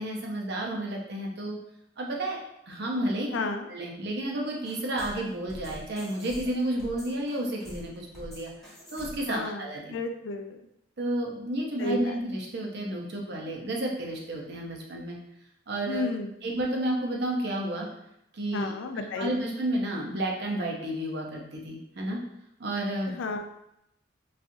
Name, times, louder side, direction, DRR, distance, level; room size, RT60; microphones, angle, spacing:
voice 1, 0.0-1.6 2.0-2.4 2.7-3.3 3.7-10.0 11.0-15.2 15.7-16.0 16.4-17.9 18.3-22.2 22.6-23.1, right 1 dB, 60° right, 0 dB, 0.7 m, -31 dB
voice 2, 3.3-3.6 9.3-9.6 9.9-10.6 11.8-12.2 15.9-16.3 18.5-19.3 23.1-23.4, left 3 dB, 75° left, 6 dB, 0.4 m, -32 dB
sound 1, 4.6-9.4, left 1 dB, ahead, 0.8 m, -45 dB
4.1 x 2.4 x 2.6 m, 0.81 s
head